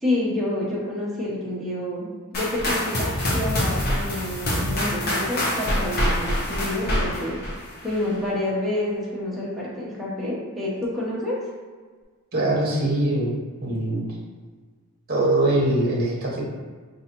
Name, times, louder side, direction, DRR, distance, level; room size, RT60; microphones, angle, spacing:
voice 1, 0.0-2.1 2.3-7.4 7.8-11.4, left 1 dB, ahead, -7 dB, 0.9 m, -28 dB
sound 1, 2.3-8.2, left 1 dB, 45° left, 0.8 m, -25 dB
voice 2, 12.3-14.0 15.1-16.4, right 1 dB, 45° right, -3 dB, 1.0 m, -22 dB
5.5 x 2.6 x 2.9 m, 1.5 s
head